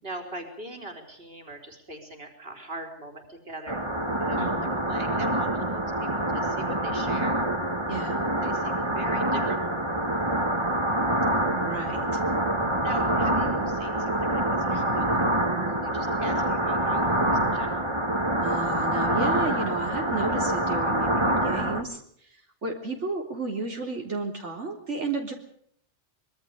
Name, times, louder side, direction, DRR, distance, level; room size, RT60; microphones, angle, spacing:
voice 1, 0.0-3.8 4.2-7.4 8.0-9.7 12.8-15.2 15.5-17.9, right 2 dB, 55° right, 4 dB, 4.3 m, -41 dB
sound 1, 3.7-21.8, right 1 dB, 25° right, 2.3 m, -26 dB
voice 2, 4.4-4.7 7.9-8.2 11.6-12.2 18.4-25.3, right 3 dB, 85° right, 0 dB, 3.9 m, -33 dB
25.5 x 22.5 x 5.1 m, 0.65 s
omnidirectional pair, 1.2 m